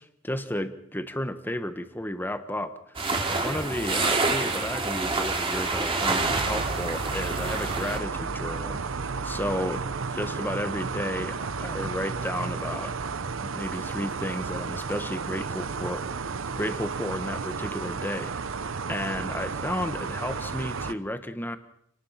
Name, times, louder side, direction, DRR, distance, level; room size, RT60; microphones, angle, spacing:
voice 1, 0.0-9.8 10.1-12.9 13.4-16.0 16.5-21.6, left 1 dB, 10° left, 9 dB, 1.4 m, -33 dB
sound 1, 2.9-8.0, right 3 dB, 25° right, 2.7 m, -27 dB
sound 2, 6.2-20.9, right 4 dB, 70° right, 0.8 m, -33 dB
28.0 x 19.5 x 5.9 m, 0.73 s
head